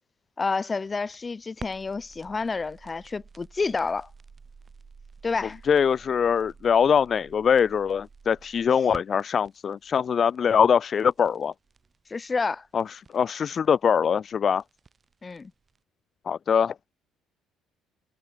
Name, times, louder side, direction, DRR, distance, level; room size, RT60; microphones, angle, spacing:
voice 1, 0.4-4.1 5.2-5.6 12.1-12.7 15.2-15.5, left 4 dB, 25° left, 1.6 m, -29 dB
sound 1, 0.6-15.8, right 5 dB, 30° right, 5.0 m, -51 dB
voice 2, 5.6-11.5 12.7-14.6 16.3-16.7, left 7 dB, 40° left, 0.7 m, -23 dB
cardioid pair, 105°, 0 cm